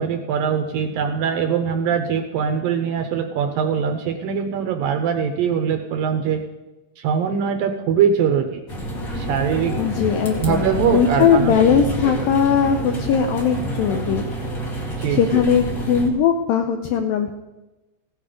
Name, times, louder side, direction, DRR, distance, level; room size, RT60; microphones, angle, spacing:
voice 1, 0.0-6.4 7.0-8.6 9.1-9.8 10.4-11.6 12.0-12.3 15.0-15.4, right 7 dB, 75° right, 6 dB, 2.1 m, -22 dB
sound 1, 8.7-16.1, right 1 dB, 35° left, 1.4 m, -28 dB
voice 2, 9.8-14.2 15.1-17.3, left 7 dB, 80° left, 4 dB, 2.1 m, -19 dB
16.5 x 11.0 x 5.2 m, 1.1 s
omnidirectional pair, 5.1 m